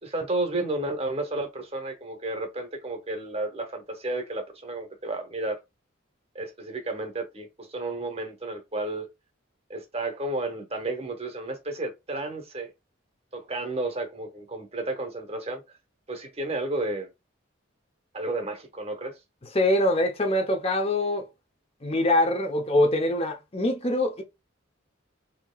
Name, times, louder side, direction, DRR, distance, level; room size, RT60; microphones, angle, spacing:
voice 1, 0.0-5.6 6.3-9.1 9.7-12.7 13.3-15.6 16.1-17.1 18.1-19.2, right 2 dB, 30° right, 0.9 m, -32 dB
voice 2, 19.5-21.3 21.8-24.2, left 1 dB, 30° left, 0.8 m, -24 dB
4.2 x 2.9 x 2.3 m
head